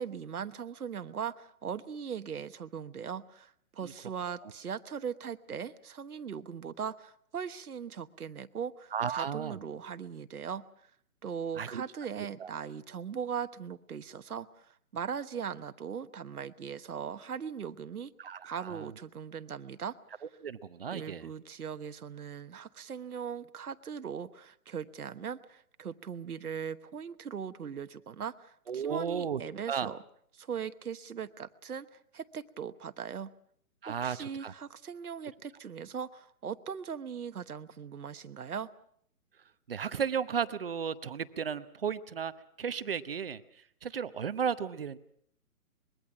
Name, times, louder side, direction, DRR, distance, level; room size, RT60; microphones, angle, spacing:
voice 1, 0.0-10.6 11.2-18.1 18.4-20.0 20.9-30.0 30.4-33.3 33.9-38.7, right 7 dB, 80° right, 11 dB, 1.2 m, -39 dB
voice 2, 8.9-9.6 11.6-11.8 12.2-12.5 18.2-18.9 20.4-21.3 28.7-29.4 29.7-29.9 33.8-34.5 39.7-42.3 42.6-45.0, right 7 dB, 40° right, 13 dB, 0.9 m, -34 dB
24.5 x 21.5 x 6.0 m, 0.66 s
hypercardioid pair, 165°, 44 cm